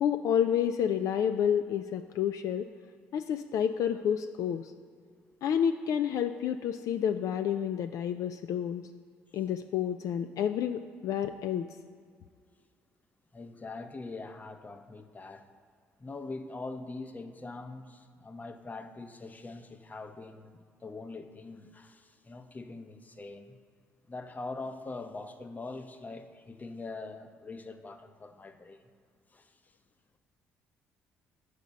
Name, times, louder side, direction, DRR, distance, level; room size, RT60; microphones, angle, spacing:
voice 1, 0.0-2.7 3.1-4.7 5.4-8.9 9.3-11.6, left 9 dB, 65° left, 0.3 m, -29 dB
voice 2, 13.3-15.5 16.0-23.6 24.0-28.8 29.3-29.7, left 3 dB, 25° left, 0.8 m, -43 dB
6.7 x 5.0 x 6.8 m
hypercardioid pair, 55°, 6 cm